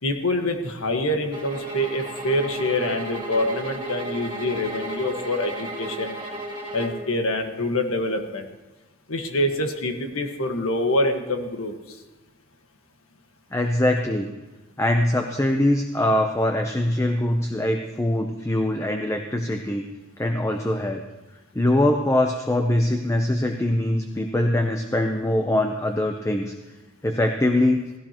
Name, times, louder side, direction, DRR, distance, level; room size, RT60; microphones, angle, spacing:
voice 1, 0.0-6.2 6.7-8.5 9.1-12.0, left 1 dB, 85° left, 4 dB, 1.6 m, -25 dB
sound 1, 1.3-7.1, right 1 dB, 25° right, 2.0 m, -34 dB
voice 2, 13.5-14.3 14.8-19.8 20.2-21.0 21.5-26.5 27.0-27.8, left 1 dB, 15° left, 4 dB, 0.7 m, -22 dB
17.0 x 16.0 x 3.0 m, 1.2 s
head